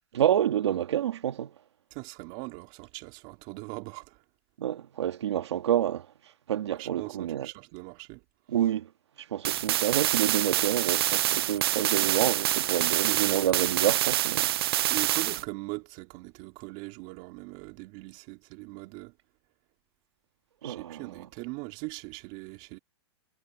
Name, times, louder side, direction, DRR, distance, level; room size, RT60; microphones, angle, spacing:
voice 1, 0.1-1.5 4.6-6.1 6.5-7.5 8.5-8.9 9.2-14.5 20.6-21.2, right 10 dB, 80° right, 1.7 m, -28 dB
voice 2, 1.9-4.2 6.8-8.2 13.0-13.4 14.9-19.1 20.6-22.8, right 26 dB, 40° right, 3.7 m, -40 dB
sound 1, 9.4-15.4, right 14 dB, 60° right, 0.5 m, -26 dB
hypercardioid pair, 150°, 14 cm